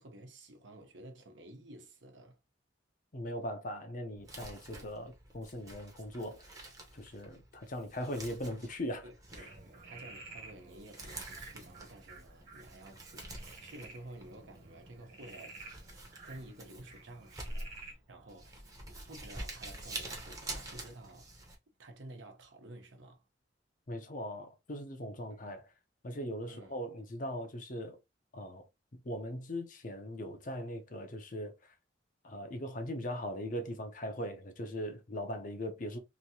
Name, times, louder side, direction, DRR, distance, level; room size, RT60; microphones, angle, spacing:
voice 1, 0.0-2.4 4.7-5.0 9.0-15.6 16.2-18.7 19.1-21.4 21.7-23.2 25.4-25.6 26.5-26.7, right 1 dB, 80° right, 1.0 m, -52 dB
voice 2, 3.1-6.5 6.9-9.1 23.9-25.6 26.0-28.0 28.3-28.7 28.9-31.7 32.2-36.0, equal, 45° left, 0.7 m, -40 dB
Crumpling crinkling, 4.2-21.5, right 2 dB, 20° right, 0.8 m, -48 dB
Frog, 9.3-17.9, right 3 dB, 50° right, 1.4 m, -52 dB
3.0 x 2.7 x 2.7 m
head